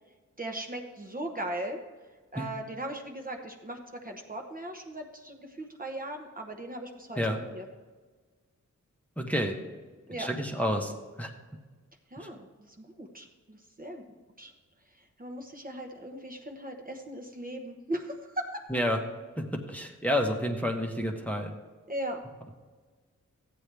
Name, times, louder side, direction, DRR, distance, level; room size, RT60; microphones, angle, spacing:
voice 1, 0.4-1.8 2.3-7.6 10.1-10.3 12.1-14.0 14.4-14.5 15.2-18.6 21.9-22.2, right 1 dB, 30° right, 3 dB, 0.9 m, -38 dB
voice 2, 9.2-9.6 10.2-10.9 11.2-11.3 12.2-12.3 18.7-19.0 19.4-21.5, equal, 5° left, 2 dB, 1.0 m, -29 dB
14.0 x 8.7 x 3.4 m, 1.4 s
wide cardioid pair, 100°, 31 cm